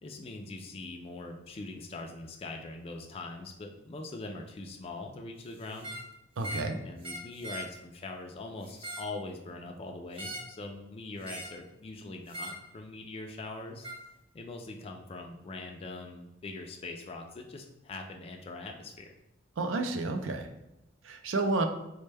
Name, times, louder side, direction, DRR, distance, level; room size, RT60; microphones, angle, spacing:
voice 1, 0.0-5.9 6.8-13.9 14.3-19.1, left 2 dB, 30° left, 2 dB, 0.3 m, -42 dB
sound 1, 5.7-6.1 6.4-6.7 7.0-7.7 8.6-9.1 10.2-10.6 11.2-11.6 12.3-12.6 13.8-14.0, right 1 dB, 30° right, 0.6 m, -41 dB
voice 2, 6.4-6.8 19.6-20.5 21.0-21.6, right 3 dB, 70° right, 6 dB, 0.4 m, -30 dB
4.2 x 2.1 x 3.2 m, 0.91 s
head